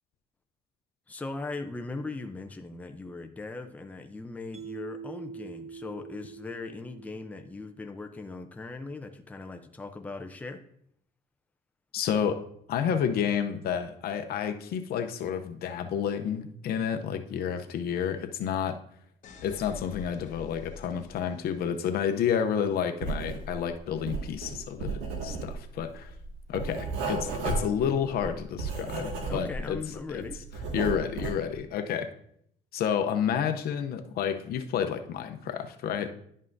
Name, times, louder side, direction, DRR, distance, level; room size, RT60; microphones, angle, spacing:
voice 1, 1.1-10.6 29.3-30.4, left 3 dB, 10° left, 6 dB, 0.5 m, -39 dB
Mallet percussion, 4.5-7.8, right 6 dB, 40° right, 0.9 m, -44 dB
voice 2, 11.9-12.4 12.7-18.8 19.4-26.1 26.5-29.8 30.1-30.3 30.7-32.1 32.7-36.1, left 8 dB, 65° left, 8 dB, 0.7 m, -30 dB
sound 1, 19.2-22.1, left 5 dB, 50° left, 1.3 m, -46 dB
Writing, 23.0-23.7 23.9-29.7 30.1-31.5, right 3 dB, 90° right, 1.9 m, -33 dB
11.0 x 5.5 x 2.6 m, 0.69 s
cardioid pair, 110°, 17 cm